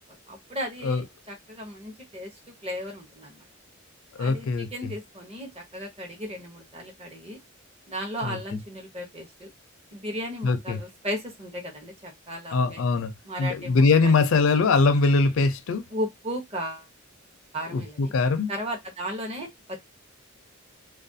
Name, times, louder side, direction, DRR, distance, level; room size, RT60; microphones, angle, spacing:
voice 1, 0.3-3.4 4.2-7.4 7.9-9.5 9.9-12.8 13.2-14.3 15.9-16.9 17.5-18.1 18.5-19.8, equal, 30° right, 0.7 m, -35 dB
voice 2, 4.2-4.9 8.2-8.6 10.4-10.8 12.5-13.1 13.4-15.8 17.7-18.5, left 4 dB, 65° left, 0.4 m, -22 dB
2.4 x 2.2 x 2.6 m
head